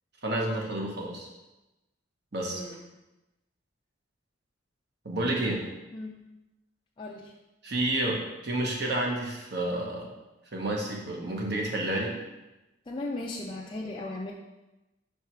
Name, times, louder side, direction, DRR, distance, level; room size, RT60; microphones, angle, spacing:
voice 1, 0.2-1.3 2.3-2.6 5.0-5.6 7.6-10.1 10.5-12.1, right 1 dB, 60° right, -1 dB, 1.2 m, -30 dB
voice 2, 7.0-7.3 12.9-14.3, left 2 dB, 25° left, -2 dB, 0.4 m, -36 dB
4.6 x 4.6 x 4.7 m, 1.0 s
head